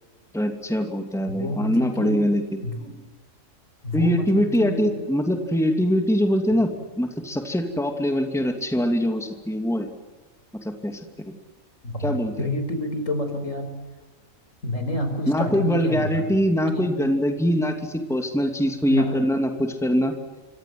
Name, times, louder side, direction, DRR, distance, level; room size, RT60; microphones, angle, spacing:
voice 1, 0.3-2.6 3.9-6.7 7.0-9.9 10.6-11.0 11.3-11.4 12.0-12.5 15.3-20.1, equal, ahead, 4 dB, 2.7 m, -23 dB
voice 2, 1.3-2.2 2.6-2.9 3.8-4.9 11.8-13.7 14.6-16.2 16.7-16.9 18.9-19.1, left 1 dB, 65° left, 7 dB, 5.2 m, -28 dB
27.5 x 26.0 x 7.8 m, 1.2 s
omnidirectional pair, 1.4 m